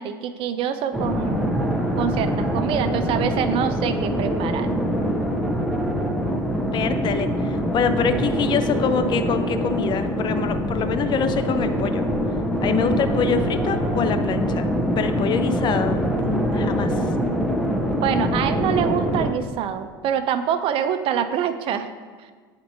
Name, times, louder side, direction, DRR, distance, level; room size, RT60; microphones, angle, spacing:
voice 1, 0.0-1.6 1.9-4.7 18.0-21.9 22.2-22.3, right 9 dB, 50° right, 9 dB, 0.4 m, -25 dB
sound 1, 0.9-19.3, equal, ahead, 0.7 m, -24 dB
voice 2, 6.6-12.1 12.6-14.7 15.0-17.0, left 6 dB, 40° left, 10 dB, 0.5 m, -25 dB
9.0 x 4.3 x 2.7 m, 1.5 s
hypercardioid pair, 75°, 11 cm